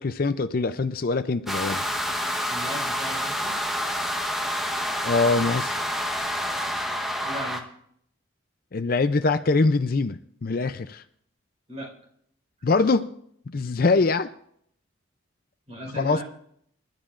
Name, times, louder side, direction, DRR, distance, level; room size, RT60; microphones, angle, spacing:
voice 1, 0.0-1.8 5.0-5.8 8.7-11.0 12.6-13.1 13.5-14.3 16.0-16.2, left 3 dB, 45° left, 10 dB, 0.4 m, -23 dB
sound 1, 1.5-7.6, equal, ahead, 1.0 m, -28 dB
voice 2, 2.5-3.6 7.2-7.6 11.7-11.9 15.7-16.2, right 1 dB, 35° right, 1 dB, 4.4 m, -36 dB
28.0 x 12.0 x 2.5 m, 0.68 s
head